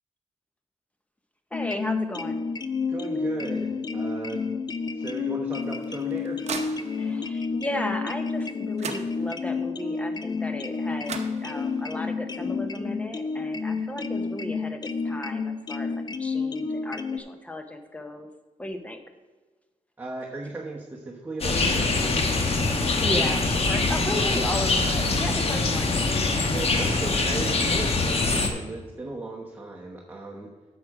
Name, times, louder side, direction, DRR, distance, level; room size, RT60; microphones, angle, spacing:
sound 1, 1.5-17.2, left 4 dB, 35° left, 0.4 m, -30 dB
voice 1, 1.5-2.4 7.0-18.3 18.6-19.0 22.9-25.9 26.3-26.5, left 1 dB, 10° left, 6 dB, 0.8 m, -35 dB
voice 2, 2.9-4.4 4.9-6.4 7.0-7.1 20.0-22.2 26.5-30.5, right 2 dB, 15° right, -2 dB, 1.0 m, -36 dB
sound 2, 5.6-7.3 8.4-8.5 8.8-9.6 10.7-10.8 11.0-11.9, right 5 dB, 60° right, 0.8 m, -38 dB
sound 3, 21.4-28.5, left 3 dB, 50° left, 1.1 m, -24 dB
9.3 x 6.5 x 4.8 m, 1.3 s
wide cardioid pair, 145°, 13 cm